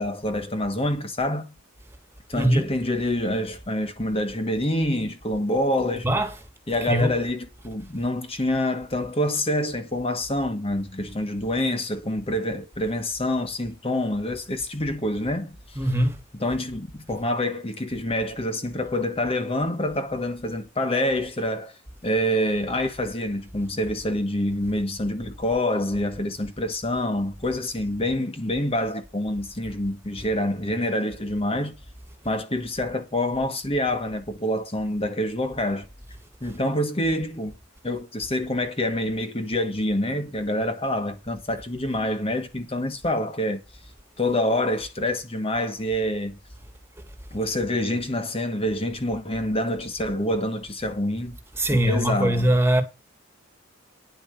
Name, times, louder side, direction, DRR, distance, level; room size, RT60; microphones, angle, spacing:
voice 1, 0.0-1.5 2.3-6.1 6.7-15.8 16.4-31.8 32.2-35.9 36.4-37.5 37.8-43.6 44.2-46.4 47.3-51.4 51.7-52.5, left 1 dB, 30° left, 1.3 m, -26 dB
voice 2, 2.3-2.7 6.0-6.3 6.9-7.1 15.8-16.2 51.6-52.8, right 1 dB, 10° right, 2.0 m, -21 dB
10.5 x 5.2 x 7.8 m
head